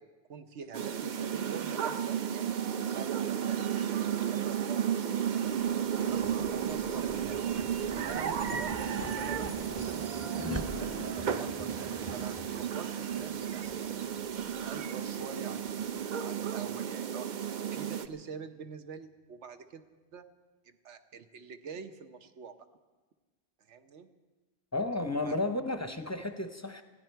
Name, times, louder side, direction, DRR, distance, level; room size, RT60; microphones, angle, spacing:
voice 1, 0.0-5.5 6.1-7.5 7.9-10.4 10.8-14.1 14.6-17.3 17.7-19.8 20.1-20.3 20.6-22.6 23.6-24.1 25.0-25.4, right 6 dB, 85° right, 9 dB, 1.2 m, -46 dB
sound 1, 0.7-18.1, right 8 dB, 50° right, 0.7 m, -33 dB
sound 2, 5.5-16.0, left 1 dB, 15° right, 0.7 m, -45 dB
voice 2, 24.7-26.8, left 2 dB, 20° left, 8 dB, 0.6 m, -33 dB
20.0 x 15.0 x 4.5 m, 1.3 s
omnidirectional pair, 1.2 m